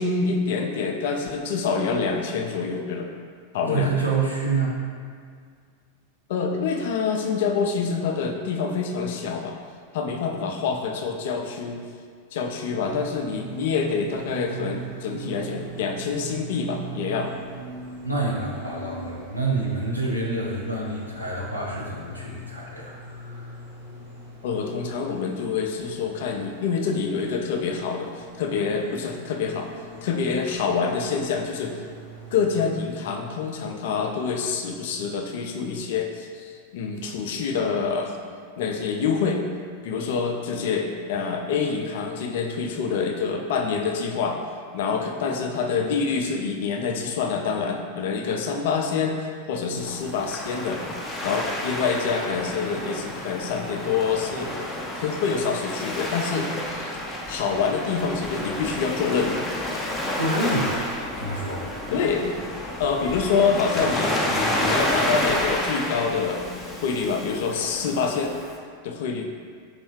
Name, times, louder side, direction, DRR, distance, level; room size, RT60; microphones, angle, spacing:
voice 1, 0.0-3.1 3.5-3.9 6.3-9.6 9.9-11.8 12.3-17.3 24.4-29.7 30.0-31.8 32.3-38.2 38.6-39.4 39.8-44.4 44.7-50.8 51.2-57.0 57.3-59.5 61.9-62.4 62.8-66.5 66.8-68.4 68.8-69.3, left 5 dB, 55° left, 2 dB, 0.4 m, -26 dB
voice 2, 3.6-4.8 18.0-23.5 60.1-60.8 61.2-61.7, right 3 dB, 85° right, -5 dB, 0.7 m, -27 dB
sound 1, 12.8-32.6, right 3 dB, 60° right, 1.3 m, -41 dB
Waves surf, 49.8-68.6, left 1 dB, 10° left, 0.6 m, -30 dB
4.3 x 3.1 x 3.1 m, 2.1 s
figure-of-eight pair, 90°, 0 cm